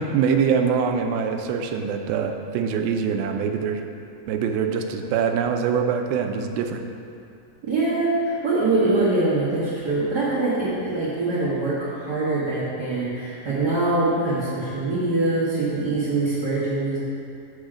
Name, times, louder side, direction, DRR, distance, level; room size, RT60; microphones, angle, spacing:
voice 1, 0.0-3.8 4.3-6.8, right 6 dB, 90° right, 5 dB, 2.4 m, -24 dB
voice 2, 7.6-17.0, right 2 dB, 60° right, -11 dB, 1.0 m, -23 dB
6.3 x 6.0 x 4.9 m, 2.5 s
omnidirectional pair, 4.2 m